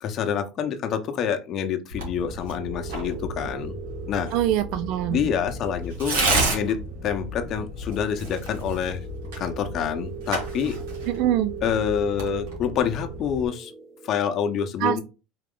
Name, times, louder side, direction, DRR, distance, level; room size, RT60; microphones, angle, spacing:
voice 1, 0.0-3.8 4.1-4.3 5.1-6.2 6.5-9.0 9.4-10.8 11.6-13.7 14.0-15.0, left 8 dB, 50° left, 6 dB, 0.9 m, -27 dB
Tearing, 1.9-13.5, right 2 dB, 90° right, 2.0 m, -32 dB
sound 1, 2.6-14.2, right 8 dB, 35° right, 1.1 m, -41 dB
voice 2, 4.3-5.3 11.1-11.5 14.8-15.0, right 12 dB, 65° right, 11 dB, 0.3 m, -24 dB
4.7 x 3.0 x 3.8 m, 0.31 s
supercardioid pair, 110°, 0 cm